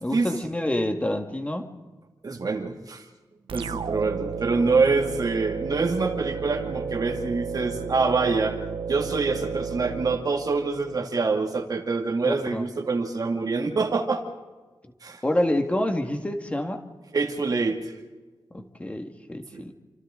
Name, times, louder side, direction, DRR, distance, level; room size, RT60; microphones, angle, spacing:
voice 1, 0.0-1.7 12.2-12.6 15.2-16.8 18.5-19.7, left 1 dB, 15° left, 4 dB, 1.8 m, -27 dB
voice 2, 2.2-3.0 3.5-8.6 8.9-14.2 15.0-15.2 17.1-17.9 19.5-19.6, right 4 dB, 45° right, 4 dB, 2.3 m, -25 dB
sound 1, 3.5-11.0, right 6 dB, 85° right, 1.0 m, -33 dB
28.5 x 27.0 x 3.9 m, 1.3 s
wide cardioid pair, 145°, 9 cm